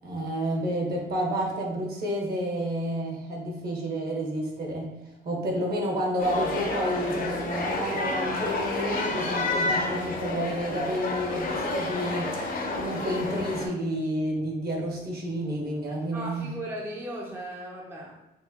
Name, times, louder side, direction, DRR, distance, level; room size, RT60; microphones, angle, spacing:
voice 1, 0.0-4.9 5.2-16.5, equal, 50° right, -1 dB, 1.0 m, -30 dB
sound 1, 6.2-13.7, left 2 dB, 45° left, 0.6 m, -30 dB
voice 2, 16.1-18.2, right 1 dB, 10° right, -2 dB, 0.5 m, -37 dB
4.6 x 2.1 x 2.8 m, 0.97 s
cardioid pair, 90°, 20 cm